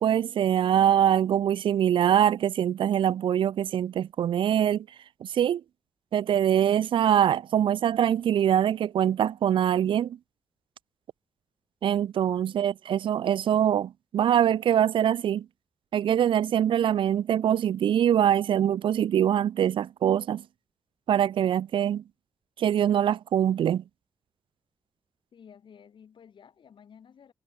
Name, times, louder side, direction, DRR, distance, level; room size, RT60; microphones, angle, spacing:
voice 1, 0.0-4.9 5.2-5.6 6.1-10.2 11.8-15.5 15.9-20.4 21.1-22.0 22.6-23.8, right 10 dB, 80° right, 0.5 m, -23 dB
voice 2, 12.4-12.8 25.3-27.3, left 7 dB, 70° left, 7.9 m, -53 dB
cardioid pair, 90°, 9 cm